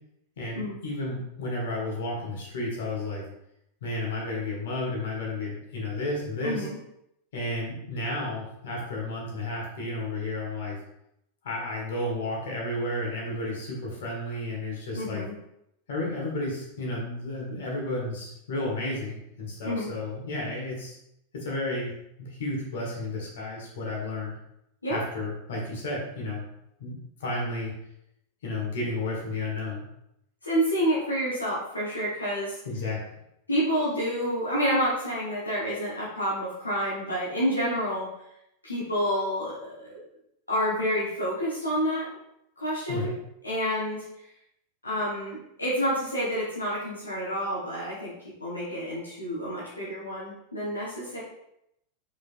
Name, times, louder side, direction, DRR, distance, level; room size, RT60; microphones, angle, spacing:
voice 1, 0.4-3.2 3.8-6.7 7.3-10.8 11.4-15.2 15.9-21.0 21.3-21.9 22.2-24.3 24.9-26.4 26.8-27.7 28.4-29.8 32.6-33.0 42.9-43.1, left 2 dB, 55° left, -2 dB, 1.6 m, -32 dB
voice 2, 6.4-6.7 14.9-15.3 19.6-19.9 24.8-25.0 30.4-32.6 33.5-38.1 38.6-40.0 40.5-42.1 42.6-43.1 43.4-44.0 44.8-48.1 48.4-51.2, equal, 80° left, -8 dB, 1.2 m, -28 dB
4.9 x 3.8 x 2.6 m, 0.80 s
figure-of-eight pair, 90°, 0 cm